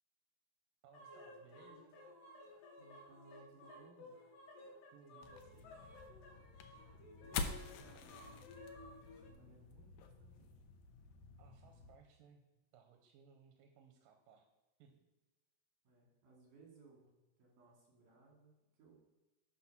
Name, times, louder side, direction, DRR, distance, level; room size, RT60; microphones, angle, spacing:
voice 1, 0.8-2.0 4.9-5.7 11.4-12.4 12.7-14.5 14.8-15.1, right 6 dB, 90° right, 3 dB, 2.6 m, -64 dB
sound 1, 0.9-9.3, left 1 dB, 90° left, 3.0 m, -56 dB
voice 2, 2.8-4.2 7.2-8.3 9.2-10.6 15.8-17.1 17.4-19.1, right 4 dB, 75° right, -2 dB, 4.0 m, -64 dB
sound 2, 5.2-12.0, left 5 dB, 75° left, 1.8 m, -48 dB
11.5 x 4.2 x 6.0 m, 1.1 s
omnidirectional pair, 3.8 m